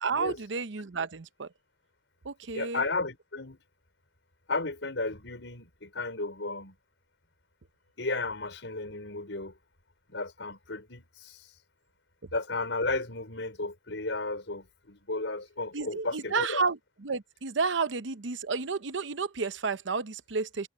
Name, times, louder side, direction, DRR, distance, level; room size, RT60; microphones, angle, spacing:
voice 1, 0.0-1.5 2.2-2.8 15.7-20.7, right 4 dB, 90° right, 0.8 m, -31 dB
voice 2, 2.5-3.6 4.5-6.7 8.0-9.5 10.1-11.5 12.3-16.6, left 3 dB, 80° left, 5.0 m, -34 dB
head